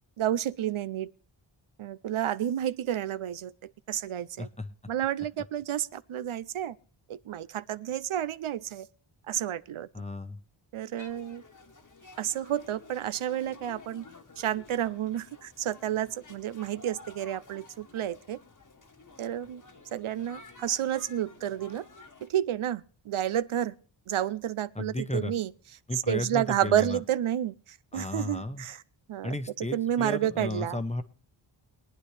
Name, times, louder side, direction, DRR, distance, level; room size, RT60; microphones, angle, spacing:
voice 1, 0.2-1.1 1.8-4.5 4.9-6.8 7.1-8.9 9.3-9.9 10.7-11.4 12.2-14.1 14.4-18.4 19.2-19.6 19.9-21.9 22.2-23.7 24.1-25.5 26.1-28.8 29.1-30.8, right 11 dB, 80° right, 0.6 m, -30 dB
voice 2, 4.4-4.7 9.9-10.4 24.7-25.3 25.9-27.0 27.9-28.6 29.2-31.0, left 2 dB, 15° left, 0.9 m, -34 dB
sound 1, 11.0-22.3, left 3 dB, 40° left, 1.3 m, -52 dB
22.0 x 9.9 x 3.3 m
wide cardioid pair, 125°, 49 cm